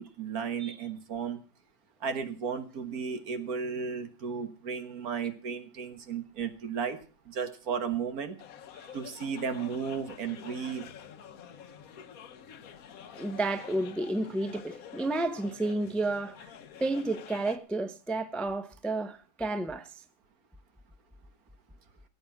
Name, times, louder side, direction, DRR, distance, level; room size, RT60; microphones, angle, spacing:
voice 1, 0.0-1.4 2.0-7.0 7.3-8.4 8.7-10.9, right 6 dB, 70° right, 1.8 m, -34 dB
sound 1, 8.4-17.6, left 8 dB, 65° left, 1.3 m, -48 dB
voice 2, 13.1-16.5 16.8-19.9, right 2 dB, ahead, 0.6 m, -31 dB
16.0 x 8.6 x 5.9 m
omnidirectional pair, 1.7 m